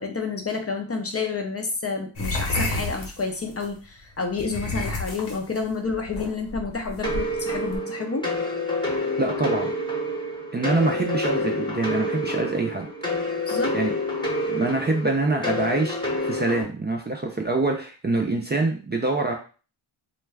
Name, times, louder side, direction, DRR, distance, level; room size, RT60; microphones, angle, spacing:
voice 1, 0.0-8.3 13.5-13.8, left 4 dB, 30° left, 4 dB, 0.5 m, -29 dB
sound 1, 2.2-3.7 4.3-7.8, left 2 dB, 70° left, 1.0 m, -31 dB
sound 2, 7.0-16.6, left 1 dB, 10° left, 0.8 m, -28 dB
voice 2, 9.2-9.7 10.5-12.9 13.7-13.9 14.4-19.4, right 3 dB, 25° right, 1 dB, 0.4 m, -25 dB
2.2 x 2.2 x 3.3 m, 0.36 s
cardioid pair, 65°, 48 cm